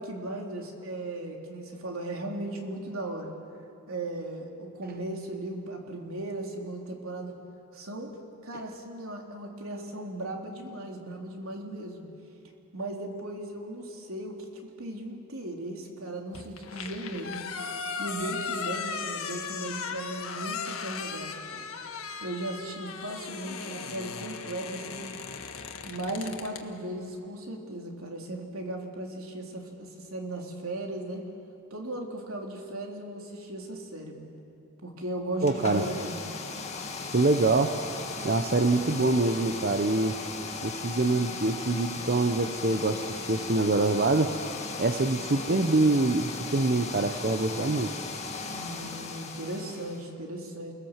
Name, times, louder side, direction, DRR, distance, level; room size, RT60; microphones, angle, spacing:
voice 1, 0.0-3.3 3.9-7.4 7.7-8.1 8.4-12.0 12.7-17.5 18.0-21.6 22.2-25.2 25.8-31.3 31.7-34.3 34.8-36.3 48.5-50.7, right 1 dB, 85° right, 1 dB, 3.4 m, -37 dB
sound 1, 16.3-26.6, left 5 dB, 80° left, 1.7 m, -37 dB
sound 2, 35.4-50.1, left 4 dB, 35° left, 2.0 m, -37 dB
voice 2, 35.4-35.9 37.1-37.8 38.2-40.2 40.6-44.4 44.8-47.9, right 2 dB, 45° right, 7 dB, 0.9 m, -25 dB
29.0 x 20.0 x 7.4 m, 2.6 s
head